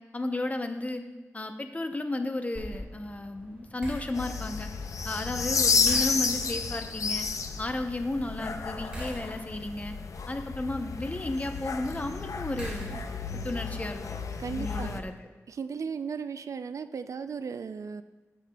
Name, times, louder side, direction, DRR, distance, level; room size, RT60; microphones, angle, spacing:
voice 1, 0.1-1.0 1.3-4.7 5.0-7.3 7.6-10.0 10.3-13.0 13.3-14.2 14.6-15.2, left 2 dB, 25° left, 6 dB, 0.7 m, -33 dB
sound 1, 2.5-13.4, right 1 dB, 20° right, 2.9 m, -45 dB
sound 2, 4.1-15.0, left 5 dB, 75° left, 0.5 m, -31 dB
voice 2, 14.4-15.0 15.5-18.0, right 6 dB, 70° right, 11 dB, 0.3 m, -36 dB
15.0 x 6.5 x 2.3 m, 1.2 s
wide cardioid pair, 100°, 6 cm